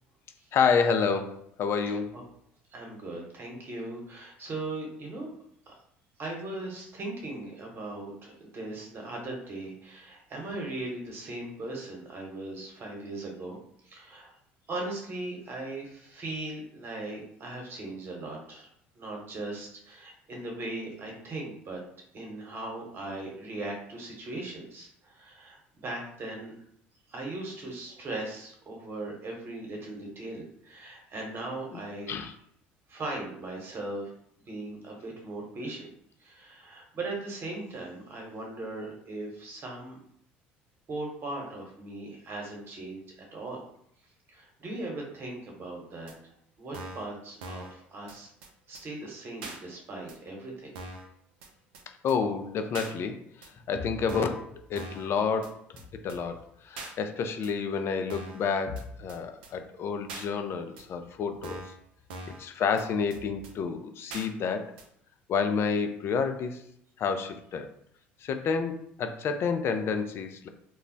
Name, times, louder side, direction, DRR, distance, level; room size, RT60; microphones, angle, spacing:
voice 1, 0.5-2.2 31.7-31.8 32.1-32.3 52.0-55.6 56.0-61.6 62.4-64.7 65.3-66.6 67.0-67.7 68.2-70.5, left 5 dB, 50° left, 7 dB, 0.4 m, -29 dB
voice 2, 2.7-5.3 5.7-5.8 6.2-13.6 13.8-14.3 14.7-18.7 18.9-21.8 22.1-26.6 27.1-32.2 32.9-34.1 34.5-35.9 36.2-40.0 40.9-43.6 44.3-48.3 48.7-50.7, right 2 dB, 45° right, 0 dB, 1.1 m, -38 dB
sound 1, 46.1-46.2 46.7-47.1 47.4-47.7 48.1-48.2 48.4-48.5 48.7-48.8 49.4-49.6 50.1-50.2 50.7-51.1 51.4-51.5 51.7-51.8 52.1-52.2 52.7-52.9 53.4-53.5 54.1-54.4 54.7-55.1 55.4-55.5 55.8-55.9 56.1-56.2 56.8-56.9 57.4-57.5 58.1-58.4 58.8-58.9 59.1-59.2 59.4-59.5 60.1-60.3 60.8-60.9 61.4-61.8 62.1-62.4 62.8-62.9 63.1-63.2 63.4-63.5 64.1-64.3 64.8-64.9, right 2 dB, 85° right, 0.5 m, -41 dB
2.3 x 2.0 x 3.8 m, 0.69 s
hypercardioid pair, 75°, 5 cm